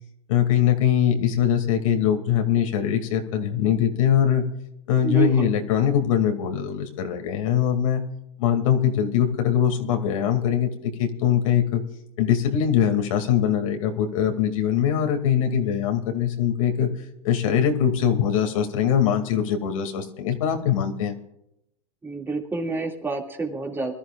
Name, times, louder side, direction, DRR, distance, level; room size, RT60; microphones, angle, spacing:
voice 1, 0.3-4.5 4.9-8.0 8.4-11.8 12.2-16.9 17.2-21.1, left 9 dB, 80° left, 5 dB, 2.5 m, -22 dB
voice 2, 5.0-5.5 22.0-23.9, right 3 dB, 15° right, 1 dB, 2.4 m, -28 dB
25.0 x 13.0 x 2.5 m, 0.82 s
supercardioid pair, 135°, 17 cm